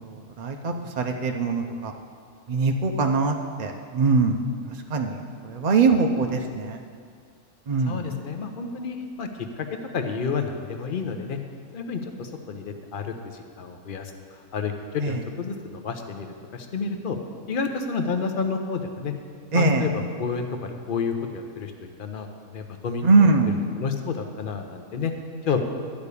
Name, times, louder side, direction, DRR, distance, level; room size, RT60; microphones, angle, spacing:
voice 1, 0.4-1.9 2.5-4.4 4.9-5.2 5.4-6.8 7.7-8.0 15.0-15.1 19.5-19.8 23.0-23.5, right 4 dB, 60° right, 3 dB, 0.4 m, -22 dB
voice 2, 7.8-9.3 9.6-9.7 9.9-11.4 11.7-17.2 17.5-19.1 19.5-25.1 25.4-25.6, left 5 dB, 45° left, 5 dB, 0.8 m, -30 dB
12.0 x 5.2 x 8.3 m, 2.1 s
omnidirectional pair, 1.6 m